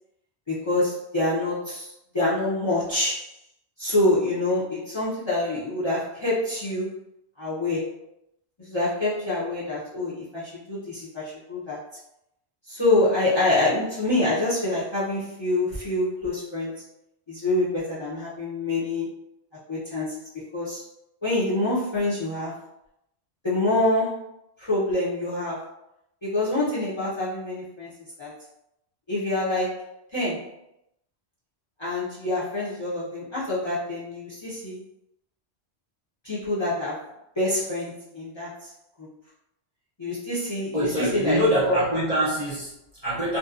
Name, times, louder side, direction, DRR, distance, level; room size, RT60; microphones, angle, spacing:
voice 1, 0.5-3.3 3.8-6.9 7.4-8.0 8.6-11.8 12.7-16.8 17.3-19.2 19.7-20.8 21.2-22.5 23.4-24.3 24.6-25.6 26.2-28.3 29.1-30.5 31.8-34.8 36.2-37.1 37.4-38.7 39.0-39.1 40.0-41.4 41.7-41.8, left 2 dB, 30° left, -9 dB, 0.6 m, -26 dB
voice 2, 40.7-43.4, equal, 40° right, -8 dB, 0.7 m, -24 dB
2.6 x 2.1 x 2.4 m, 0.83 s
omnidirectional pair, 1.1 m